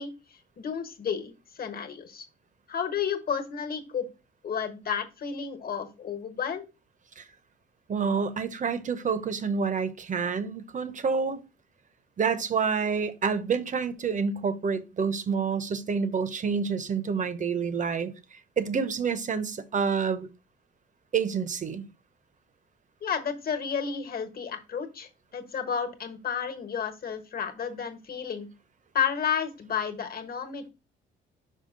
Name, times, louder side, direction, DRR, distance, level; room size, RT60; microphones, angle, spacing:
voice 1, 0.0-2.3 2.7-4.1 4.4-6.7 23.0-28.5 28.9-30.7, left 7 dB, 50° left, 1.3 m, -32 dB
voice 2, 7.9-11.4 12.2-20.3 21.1-21.9, right 5 dB, 40° right, 0.8 m, -28 dB
5.5 x 4.9 x 3.7 m
cardioid pair, 90°, 20 cm